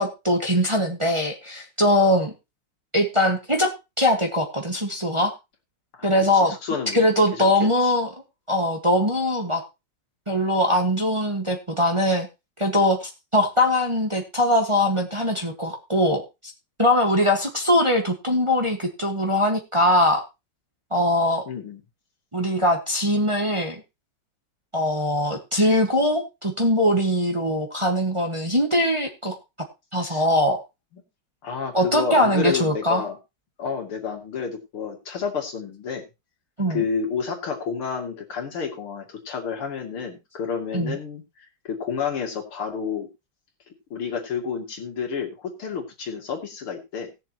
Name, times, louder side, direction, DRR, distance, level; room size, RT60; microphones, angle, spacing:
voice 1, 0.0-2.3 2.9-5.3 6.0-6.5 6.9-8.1 8.5-9.6 10.3-12.3 12.6-16.2 16.8-20.2 20.9-21.4 22.3-23.8 24.7-29.3 29.9-30.6 31.7-33.0 36.6-36.8 40.7-41.0, left 1 dB, 15° right, 2 dB, 1.4 m, -21 dB
voice 2, 5.9-7.9 21.5-21.8 30.0-30.2 31.4-33.2 33.6-36.0 36.7-41.2 41.6-43.1 43.9-47.1, left 6 dB, 85° left, 1 dB, 3.2 m, -30 dB
18.5 x 6.9 x 3.0 m, 0.25 s
omnidirectional pair, 2.3 m